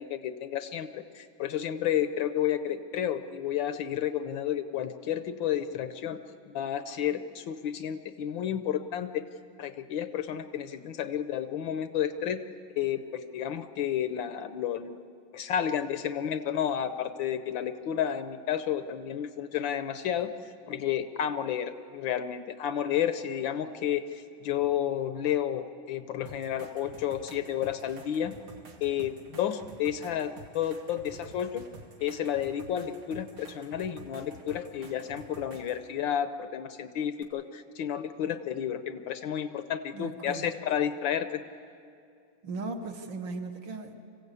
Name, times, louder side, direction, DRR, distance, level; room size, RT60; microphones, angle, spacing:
voice 1, 0.0-6.2 6.5-9.2 9.6-12.4 12.7-15.0 15.3-20.3 20.7-28.4 28.8-31.6 32.0-41.4, left 9 dB, 70° left, 11 dB, 1.4 m, -31 dB
sound 1, 26.3-35.9 37.2-37.3, right 2 dB, 80° right, 2.7 m, -50 dB
voice 2, 39.9-40.5 42.4-43.9, right 3 dB, 65° right, 4 dB, 2.0 m, -37 dB
25.5 x 16.0 x 8.3 m, 2.5 s
omnidirectional pair, 2.3 m